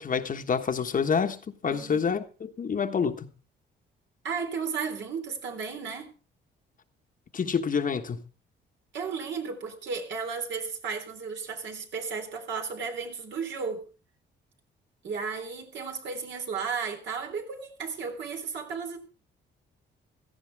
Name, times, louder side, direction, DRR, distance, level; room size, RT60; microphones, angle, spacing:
voice 1, 0.0-3.3 7.3-8.2, left 6 dB, 45° left, 1.4 m, -28 dB
voice 2, 1.7-2.1 4.2-6.1 8.9-13.9 15.0-19.0, right 5 dB, 65° right, 3.8 m, -34 dB
16.5 x 14.0 x 3.5 m
cardioid pair, 90°, 20 cm